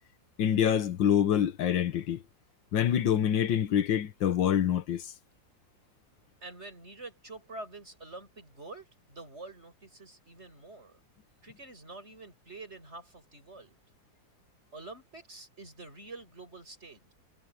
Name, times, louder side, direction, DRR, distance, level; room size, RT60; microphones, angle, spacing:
voice 1, 0.4-2.2 2.7-5.1, left 9 dB, 80° left, 1.7 m, -26 dB
voice 2, 6.4-11.0 11.4-13.8 14.7-17.1, right 2 dB, 35° right, 6.8 m, -47 dB
omnidirectional pair, 2.0 m